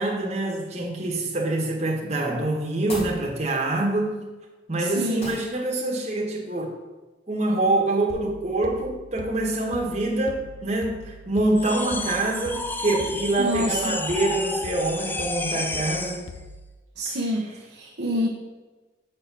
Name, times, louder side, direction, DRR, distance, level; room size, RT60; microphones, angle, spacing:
voice 1, 0.0-4.3 4.7-6.7 7.3-16.2 17.1-17.2, right 2 dB, 35° right, -2 dB, 1.4 m, -25 dB
sound 1, 2.8-3.2 5.2-5.5, left 1 dB, 35° left, 1.5 m, -35 dB
voice 2, 4.8-5.3 13.4-14.0 17.0-18.3, equal, 60° right, -2 dB, 0.8 m, -27 dB
sound 2, 8.1-16.8, left 2 dB, 85° left, 0.6 m, -43 dB
sound 3, 11.6-16.3, left 2 dB, 10° left, 0.3 m, -31 dB
6.4 x 4.3 x 6.2 m, 1.2 s
head